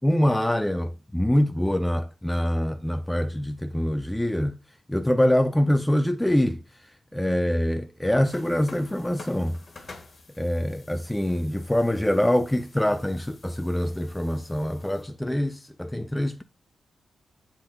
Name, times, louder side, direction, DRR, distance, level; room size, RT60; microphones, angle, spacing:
voice 1, 0.0-4.6 4.9-9.6 10.4-16.4, left 1 dB, 5° left, 0.4 m, -24 dB
sound 1, 8.2-15.0, left 3 dB, 45° left, 1.5 m, -49 dB
9.5 x 3.9 x 3.7 m
wide cardioid pair, 110°, 0 cm